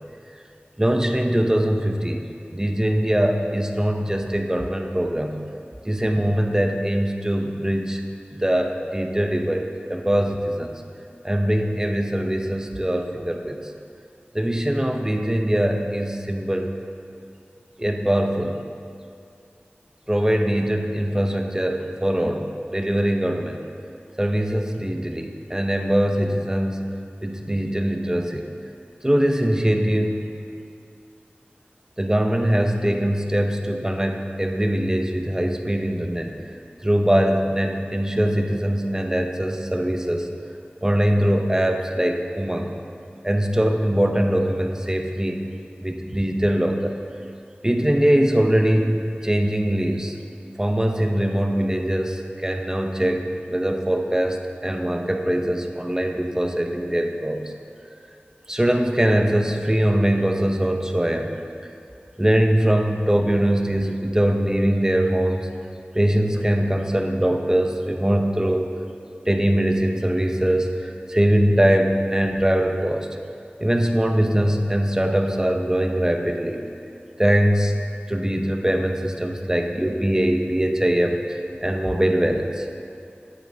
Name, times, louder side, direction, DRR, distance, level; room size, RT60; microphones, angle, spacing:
voice 1, 0.8-2.2 2.5-5.4 5.8-8.0 8.3-10.8 11.2-13.6 14.3-16.7 17.8-18.6 20.1-23.6 24.2-26.9 27.2-28.5 29.0-30.2 32.0-36.4 36.8-40.3 40.8-42.7 43.2-45.4 45.8-46.9 47.6-50.1 50.6-57.4 58.5-61.3 62.2-65.5 65.9-68.6 69.3-73.1 73.6-76.6 77.2-77.7 78.1-82.7, right 1 dB, 15° right, 4 dB, 0.7 m, -22 dB
9.6 x 8.5 x 2.7 m, 2.4 s
wide cardioid pair, 40°, 4 cm